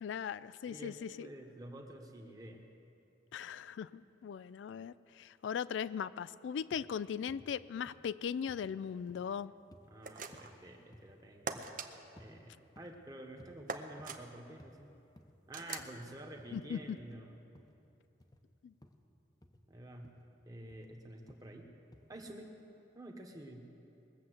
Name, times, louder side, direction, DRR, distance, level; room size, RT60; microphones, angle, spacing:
voice 1, 0.0-1.3 3.3-9.5 15.7-15.8 16.5-17.0 18.6-18.7, left 7 dB, 80° left, 16 dB, 0.3 m, -39 dB
voice 2, 0.7-2.7 9.9-11.6 12.1-14.9 15.5-17.4 19.7-20.1 20.4-21.7 22.1-22.5 22.9-23.7, right 1 dB, 20° right, 2 dB, 1.2 m, -49 dB
sound 1, 6.7-6.9 7.3-7.5 7.9-8.1 8.5-8.7 9.1-9.3 9.7-9.9 10.3-10.6 10.9-11.2 11.6-11.8 12.2-12.3 12.8-13.0 13.4-13.6 13.9-14.2 14.6-14.8 15.2-15.4 15.8-15.9 16.4-16.6 17.0-17.1 17.6-17.8 18.2-18.4 18.8-19.0 19.4-19.6 20.0-20.2 20.7-20.9 21.3-21.5 21.9-22.1, left 1 dB, 20° left, 0.7 m, -59 dB
sound 2, 10.0-10.6 11.5-11.9 13.7-14.2 15.5-15.9, right 5 dB, 45° right, 0.7 m, -41 dB
21.0 x 7.2 x 7.8 m, 2.8 s
head